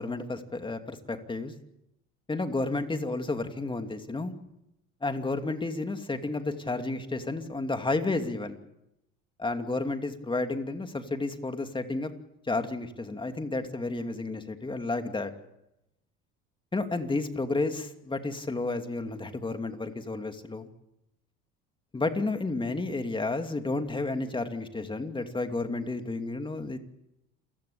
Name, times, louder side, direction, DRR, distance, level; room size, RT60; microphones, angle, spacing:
voice 1, 0.0-1.5 2.3-4.3 5.0-8.6 9.4-12.1 12.5-15.3 16.7-20.7 21.9-26.8, left 3 dB, 15° left, 7 dB, 2.7 m, -31 dB
28.5 x 16.5 x 8.7 m, 0.88 s
supercardioid pair, 95°, 31 cm